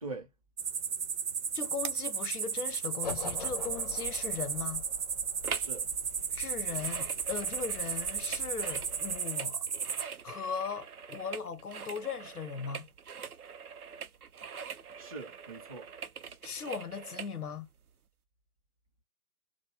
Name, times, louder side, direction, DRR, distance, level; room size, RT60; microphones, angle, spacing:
sound 1, 0.6-10.0, right 7 dB, 50° right, 0.8 m, -34 dB
voice 1, 1.5-4.8 6.3-9.6 10.2-12.9 16.4-17.7, left 6 dB, 85° left, 0.7 m, -38 dB
sound 2, 3.0-9.2, left 6 dB, 30° left, 0.4 m, -45 dB
sound 3, 5.4-5.8 6.1-17.4 17.9-18.0, right 6 dB, 85° right, 0.6 m, -44 dB
voice 2, 5.5-5.9 15.0-15.9, right 3 dB, 25° right, 0.5 m, -42 dB
2.6 x 2.0 x 3.4 m
figure-of-eight pair, 125°, 44 cm